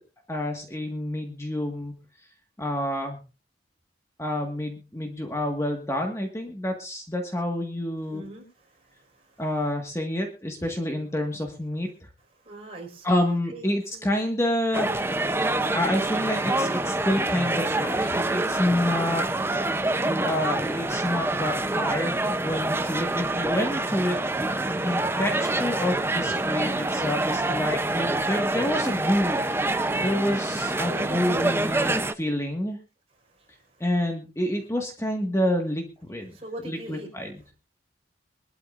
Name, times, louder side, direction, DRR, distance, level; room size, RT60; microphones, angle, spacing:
voice 1, 0.3-1.9 2.6-3.2 4.2-8.2 9.4-11.9 13.0-14.9 15.7-19.2 20.0-32.8 33.8-36.3 36.6-37.3, left 1 dB, 15° left, 2 dB, 1.7 m, -28 dB
voice 2, 8.1-9.4 12.4-14.1 30.9-31.4 33.4-33.5 36.3-37.1, right 2 dB, 35° right, 1 dB, 4.9 m, -41 dB
sound 1, 14.7-32.1, right 2 dB, 15° right, 0.6 m, -26 dB
23.0 x 12.5 x 2.5 m, 0.32 s
head